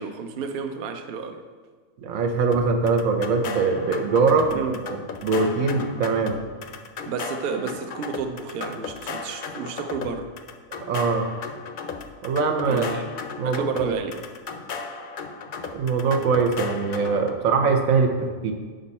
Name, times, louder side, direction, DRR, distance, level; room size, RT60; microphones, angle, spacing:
voice 1, 0.0-1.4 4.5-4.8 7.1-10.3 12.7-13.0 13.4-14.2, right 5 dB, 55° right, 6 dB, 0.7 m, -31 dB
voice 2, 2.0-6.4 10.9-11.3 12.2-12.9 13.4-14.0 15.7-18.5, right 4 dB, 90° right, 4 dB, 1.2 m, -22 dB
sound 1, 2.5-17.4, left 5 dB, 55° left, 0.5 m, -36 dB
6.7 x 5.3 x 4.2 m, 1.5 s
omnidirectional pair, 1.4 m